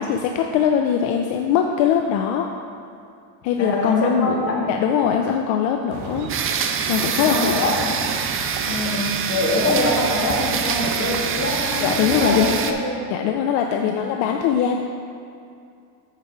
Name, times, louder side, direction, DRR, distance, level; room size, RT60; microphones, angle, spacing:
voice 1, 0.0-2.5 3.4-4.4 4.7-6.3 6.9-7.5 11.8-12.7 13.1-14.8, left 8 dB, 65° left, 3 dB, 0.6 m, -21 dB
voice 2, 3.6-4.7 7.2-8.1 8.6-13.1 13.8-14.1, left 1 dB, 30° left, -3 dB, 1.8 m, -24 dB
sound 1, 5.9-12.6, right 6 dB, 80° right, 0.8 m, -33 dB
sound 2, 6.3-12.7, right 6 dB, 30° right, 0.4 m, -25 dB
7.6 x 5.2 x 4.6 m, 2.4 s
cardioid pair, 115°, 48 cm